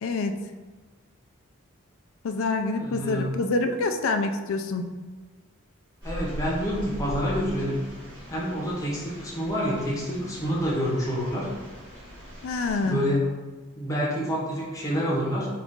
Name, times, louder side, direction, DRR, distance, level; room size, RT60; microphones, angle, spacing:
voice 1, 0.0-0.4 2.2-4.9 12.4-13.0, left 3 dB, 75° left, 7 dB, 0.3 m, -26 dB
voice 2, 2.8-3.3 6.0-7.8 8.3-11.5 12.8-13.3 13.8-15.5, equal, 15° left, -5 dB, 0.7 m, -27 dB
sound 1, 6.0-12.9, equal, 20° right, 1.3 m, -40 dB
3.9 x 2.4 x 3.6 m, 1.3 s
head